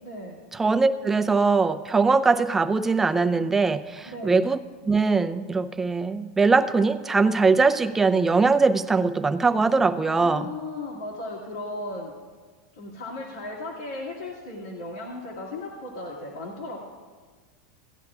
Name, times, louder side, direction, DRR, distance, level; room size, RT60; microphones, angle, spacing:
voice 1, 0.0-0.4 4.1-4.4 10.1-12.1 12.7-16.8, left 2 dB, 85° left, -4 dB, 2.1 m, -36 dB
voice 2, 0.5-4.6 4.9-10.5, right 4 dB, 15° right, 7 dB, 0.6 m, -21 dB
17.5 x 10.5 x 2.4 m, 1.5 s
hypercardioid pair, 110°, 2 cm